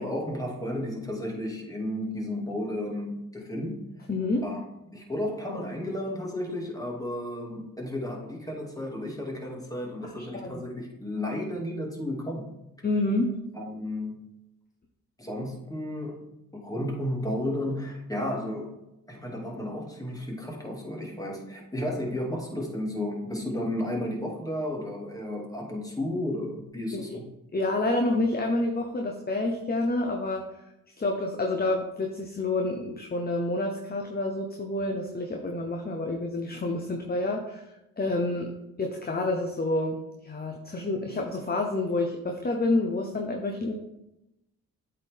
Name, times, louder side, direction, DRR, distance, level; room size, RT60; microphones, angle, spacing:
voice 1, 0.0-3.8 4.4-4.6 4.9-12.5 13.5-14.3 15.2-18.8 19.1-27.2, left 1 dB, 10° left, -1 dB, 2.4 m, -33 dB
voice 2, 4.1-4.5 10.2-10.6 12.8-13.3 26.9-27.2 27.5-30.5 31.0-37.6 38.0-38.5 38.8-43.7, left 2 dB, 25° left, 3 dB, 1.0 m, -28 dB
8.1 x 4.5 x 3.6 m, 0.90 s
supercardioid pair, 50°, 36 cm